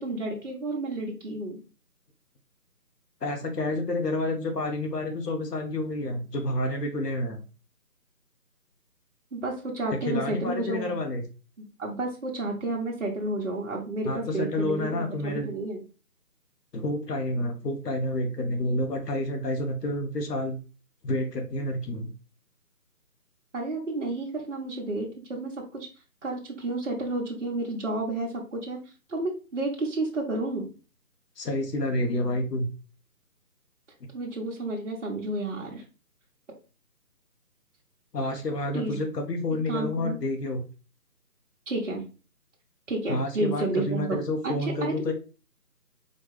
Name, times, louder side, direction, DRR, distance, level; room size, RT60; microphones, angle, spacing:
voice 1, 0.0-1.6 9.3-11.0 11.8-15.8 23.5-25.9 26.2-28.8 29.1-30.7 34.1-35.8 38.7-39.0 39.7-40.2 41.7-42.0 42.9-44.2 44.4-44.5 44.8-45.1, right 2 dB, 50° right, -2 dB, 1.0 m, -31 dB
voice 2, 3.2-7.4 9.9-11.2 14.0-15.5 16.7-20.6 21.0-22.1 31.4-32.7 38.1-40.6 43.1-45.1, left 1 dB, 80° left, 4 dB, 1.0 m, -29 dB
4.3 x 2.2 x 3.1 m, 0.34 s
figure-of-eight pair, 175°, 47 cm